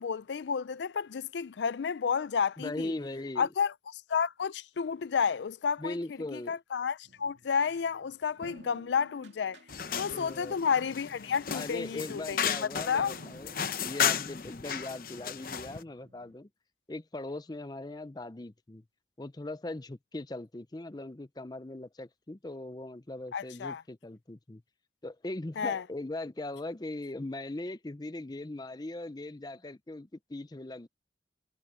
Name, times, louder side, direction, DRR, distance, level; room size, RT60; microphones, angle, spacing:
voice 1, 0.0-2.9 3.4-6.0 6.3-9.6 10.0-13.1 23.3-23.8 25.6-25.8, left 6 dB, 80° left, 0.4 m, -31 dB
voice 2, 2.6-3.5 5.8-6.6 10.1-10.6 11.5-16.5 16.9-18.8 19.2-24.6 25.0-30.9, left 2 dB, 25° left, 0.6 m, -40 dB
sound 1, 7.0-16.4, right 2 dB, 90° right, 2.4 m, -56 dB
sound 2, 9.7-15.8, left 8 dB, 50° left, 0.8 m, -34 dB
head